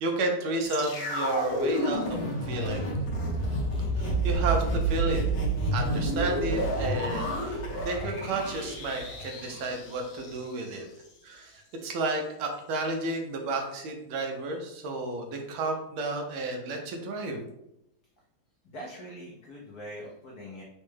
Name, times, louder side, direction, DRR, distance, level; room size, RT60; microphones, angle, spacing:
voice 1, 0.0-3.0 4.0-5.2 5.7-10.9 11.2-17.4, right 2 dB, 75° right, 2 dB, 1.4 m, -32 dB
sound 1, 0.7-10.8 11.0-11.1, right 2 dB, 55° left, 1.1 m, -29 dB
voice 2, 18.6-20.6, equal, 85° left, -2 dB, 0.8 m, -42 dB
4.0 x 2.2 x 3.2 m, 0.82 s
omnidirectional pair, 2.4 m